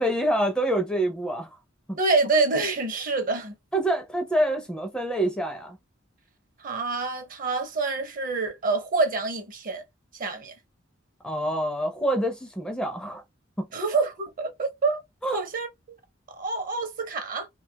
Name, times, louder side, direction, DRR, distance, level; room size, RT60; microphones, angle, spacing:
voice 1, 0.0-1.5 3.7-5.8 11.2-13.2 13.6-13.7 15.2-15.4, right 1 dB, 5° left, 0.4 m, -26 dB
voice 2, 2.0-3.5 6.6-9.8 10.2-10.5 13.7-15.0 15.3-15.7 16.3-17.5, right 3 dB, 45° right, 0.6 m, -26 dB
2.4 x 2.2 x 2.7 m
head